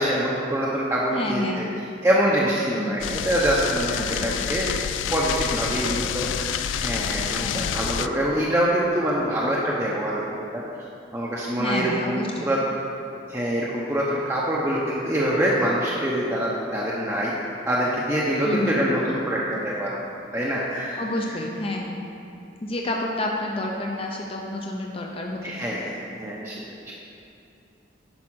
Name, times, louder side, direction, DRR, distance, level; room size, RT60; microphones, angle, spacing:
voice 1, 0.0-1.6 2.0-4.7 5.1-10.6 11.1-12.6 13.3-17.3 17.7-20.0 20.3-21.0 21.3-21.4 25.4-26.6 26.9-27.0, right 1 dB, 15° right, -6 dB, 0.8 m, -25 dB
voice 2, 1.1-1.6 2.8-3.0 4.1-4.4 5.5-6.3 7.4-7.8 11.6-12.5 18.4-18.8 21.0-22.0 22.6-25.8, left 1 dB, 30° left, 0 dB, 0.6 m, -30 dB
sound 1, 3.0-8.1, left 9 dB, 85° left, 0.3 m, -28 dB
10.5 x 4.9 x 6.2 m, 2.7 s
head